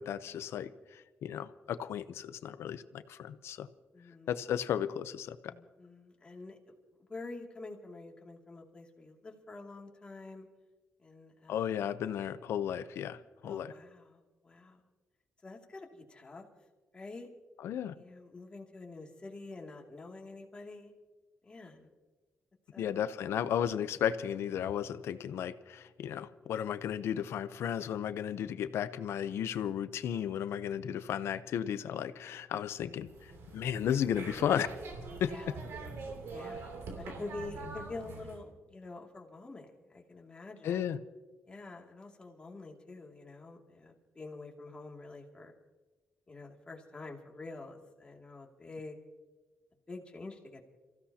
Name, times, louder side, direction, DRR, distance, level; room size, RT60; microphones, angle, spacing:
voice 1, 0.0-3.7 4.3-5.5 11.5-13.7 17.6-17.9 22.8-34.7 35.2-35.3 40.6-41.0, left 9 dB, 80° left, 13 dB, 0.7 m, -34 dB
voice 2, 3.9-4.4 5.4-6.7 7.1-10.5 11.0-11.6 13.4-14.8 15.4-16.4 16.9-17.3 17.9-20.9 21.4-21.9 22.7-23.0 35.1-35.5 36.3-40.9 41.5-45.5 46.3-49.0 49.9-50.6, left 3 dB, 25° left, 0 dB, 2.5 m, -47 dB
sound 1, 33.0-38.4, right 3 dB, 80° right, 2.9 m, -44 dB
29.5 x 15.5 x 2.9 m, 1.3 s
cardioid pair, 130°, 4 cm